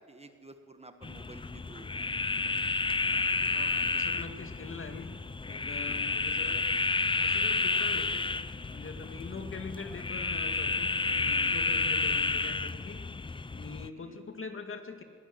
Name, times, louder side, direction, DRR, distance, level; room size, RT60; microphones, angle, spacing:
voice 1, 0.0-1.9 5.9-6.1 13.9-14.2, right 2 dB, 20° right, 7 dB, 1.5 m, -51 dB
sound 1, 1.0-13.9, left 3 dB, 15° left, 0.5 m, -31 dB
voice 2, 3.5-5.2 5.4-6.6 7.2-8.3 8.7-13.0 13.5-15.0, left 4 dB, 40° left, 6 dB, 2.2 m, -43 dB
22.5 x 17.5 x 9.2 m, 2.1 s
cardioid pair, 110°, 34 cm